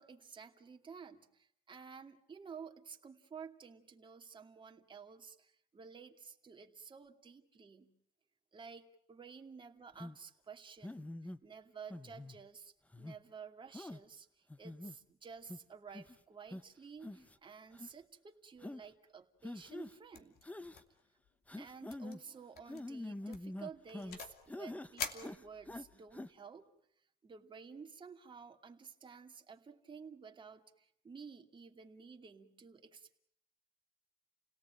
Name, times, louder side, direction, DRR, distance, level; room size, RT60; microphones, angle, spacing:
voice 1, 0.0-7.9 8.5-20.4 21.5-26.7 27.2-33.2, right 6 dB, 30° right, 3 dB, 2.4 m, -53 dB
sound 1, 10.0-10.2 10.8-11.4 11.9-12.4 12.9-13.2 13.7-14.0 14.5-15.0 15.5-15.6 15.9-16.2 16.5-16.6 17.0-17.4 17.7-17.9 18.6-18.8 19.4-19.9 20.4-20.8 21.5-22.2 22.7-24.2 24.5-24.9 25.2-25.9 26.1-26.3, left 1 dB, 10° left, 1.0 m, -45 dB
sound 2, 20.1-20.4 20.7-21.0 21.3-21.4 21.9-22.2 22.6-22.8 23.3-24.4 25.0-26.0, left 7 dB, 65° left, 2.7 m, -45 dB
29.5 x 18.0 x 9.0 m, 0.73 s
cardioid pair, 110°, 17 cm